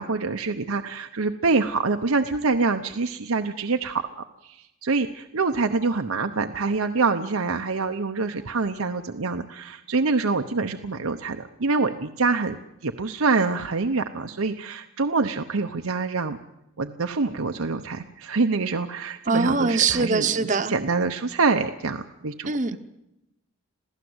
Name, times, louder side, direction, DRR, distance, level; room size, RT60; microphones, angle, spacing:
voice 1, 0.0-16.4 16.8-22.8, right 4 dB, 85° right, 6 dB, 0.9 m, -26 dB
voice 2, 19.3-20.7 22.5-22.8, right 4 dB, 35° right, 7 dB, 0.9 m, -22 dB
27.0 x 16.5 x 8.0 m, 0.90 s
head